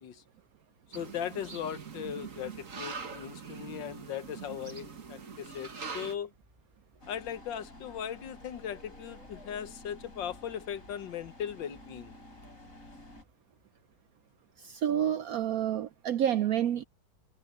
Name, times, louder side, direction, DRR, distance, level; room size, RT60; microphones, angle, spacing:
voice 1, 0.9-6.3 7.1-12.2, left 9 dB, 75° left, 1.7 m, -38 dB
sound 1, 0.9-6.1, right 5 dB, 45° right, 1.9 m, -43 dB
sound 2, 1.4-13.3, right 1 dB, 20° right, 6.1 m, -64 dB
sound 3, 7.0-13.2, left 1 dB, 45° left, 8.5 m, -51 dB
voice 2, 14.6-16.8, right 10 dB, 70° right, 0.8 m, -29 dB
omnidirectional pair, 2.0 m